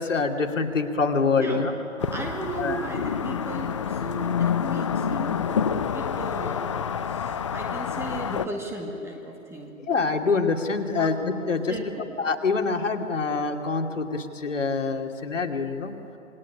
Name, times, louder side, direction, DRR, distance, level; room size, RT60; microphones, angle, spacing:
voice 1, 0.0-1.7 2.6-2.9 9.8-11.8 12.2-15.9, left 4 dB, 65° left, 3 dB, 2.8 m, -25 dB
sound 1, 2.0-8.5, left 7 dB, 25° left, 0.6 m, -28 dB
voice 2, 2.1-6.7 7.0-9.7 10.9-11.1 11.7-11.9, right 3 dB, 5° right, 1 dB, 1.8 m, -36 dB
28.0 x 21.5 x 10.0 m, 3.0 s
figure-of-eight pair, 135°, 40 cm